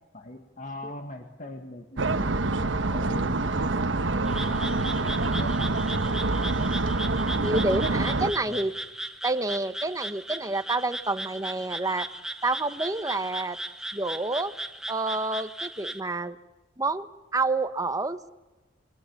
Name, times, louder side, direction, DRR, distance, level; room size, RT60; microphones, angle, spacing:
voice 1, 0.1-3.4 4.4-5.5 8.5-8.7 10.4-10.5, left 1 dB, 45° left, 4 dB, 2.0 m, -41 dB
sound 1, 2.0-8.3, right 2 dB, 85° right, 1.3 m, -26 dB
Frog, 4.3-16.0, right 1 dB, 5° right, 1.4 m, -37 dB
voice 2, 7.4-8.7 9.2-12.1 12.4-13.6 13.9-14.5 14.9-16.4 16.8-17.1 17.3-18.3, right 2 dB, 20° right, 10 dB, 1.2 m, -28 dB
28.5 x 23.5 x 7.2 m, 1.1 s
head